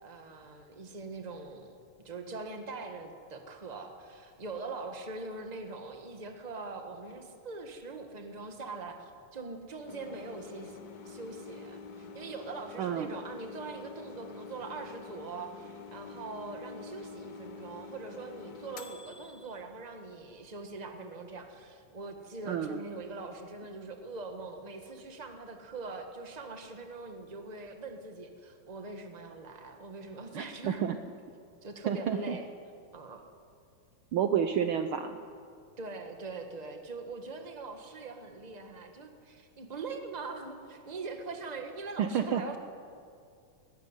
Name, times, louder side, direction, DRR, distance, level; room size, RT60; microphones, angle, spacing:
voice 1, 0.0-30.8 31.6-32.5 32.9-33.2 35.8-42.6, right 3 dB, 25° right, 5 dB, 0.8 m, -42 dB
sound 1, 9.9-19.6, left 5 dB, 55° left, 1.0 m, -47 dB
voice 2, 12.8-13.1 22.5-22.8 30.3-31.0 31.9-32.4 34.1-35.2 42.0-42.4, right 8 dB, 90° right, 8 dB, 1.1 m, -30 dB
18.5 x 15.0 x 9.8 m, 2.3 s
omnidirectional pair, 3.3 m